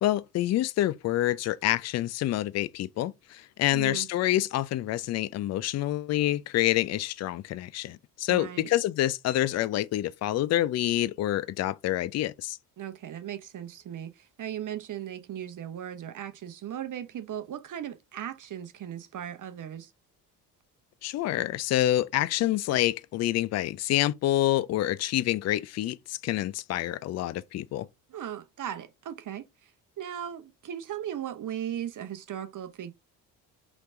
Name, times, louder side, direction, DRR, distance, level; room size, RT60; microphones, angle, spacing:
voice 1, 0.0-12.6 21.0-27.9, left 14 dB, 35° left, 0.4 m, -27 dB
voice 2, 3.7-4.1 8.3-8.7 12.8-19.9 28.1-29.7 30.0-32.9, right 10 dB, 40° right, 0.8 m, -37 dB
3.2 x 3.1 x 4.3 m
hypercardioid pair, 60°, 48 cm